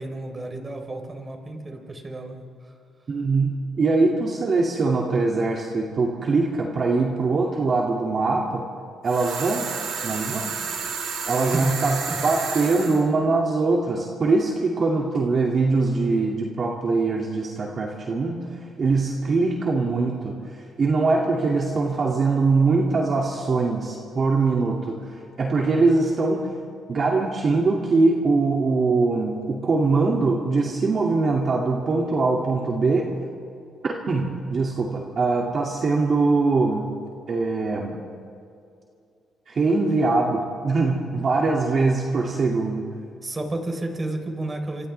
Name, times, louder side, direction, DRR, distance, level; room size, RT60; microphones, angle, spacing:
voice 1, 0.0-2.7 11.4-11.7 12.1-12.2 43.2-44.9, right 2 dB, 25° right, 3 dB, 3.8 m, -32 dB
voice 2, 3.1-8.7 9.0-9.7 10.0-10.5 11.3-12.0 12.2-18.5 18.8-20.4 20.8-26.5 26.9-33.1 33.8-36.9 37.3-38.0 39.5-42.9, right 3 dB, 45° right, -1 dB, 2.4 m, -22 dB
sound 1, 9.1-13.0, right 5 dB, 85° right, 4.4 m, -31 dB
29.5 x 26.5 x 3.4 m, 2.5 s
cardioid pair, 90°, 0 cm